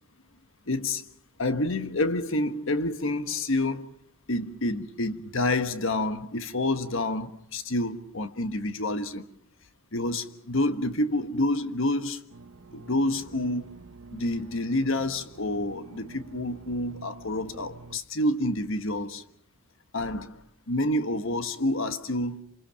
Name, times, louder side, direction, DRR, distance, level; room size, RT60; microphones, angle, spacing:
voice 1, 0.7-1.0 1.4-3.9 4.3-9.3 9.9-12.2 12.7-13.7 14.1-19.2 19.9-20.4 20.7-22.4, left 1 dB, 60° left, 1.4 m, -28 dB
sound 1, 12.3-18.0, right 3 dB, 75° right, 1.0 m, -47 dB
28.0 x 26.0 x 5.8 m
head